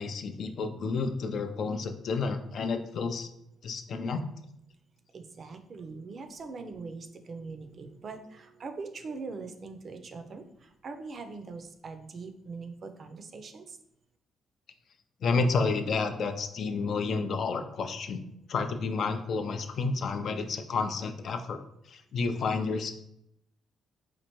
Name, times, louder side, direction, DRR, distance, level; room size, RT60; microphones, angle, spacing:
voice 1, 0.0-3.3 3.6-4.2 15.2-18.2 18.5-21.6 21.9-22.9, left 4 dB, 60° left, 7 dB, 0.4 m, -30 dB
voice 2, 5.1-13.8, right 4 dB, 50° right, 8 dB, 0.4 m, -42 dB
4.3 x 2.5 x 3.0 m, 0.78 s
cardioid pair, 90°, 0 cm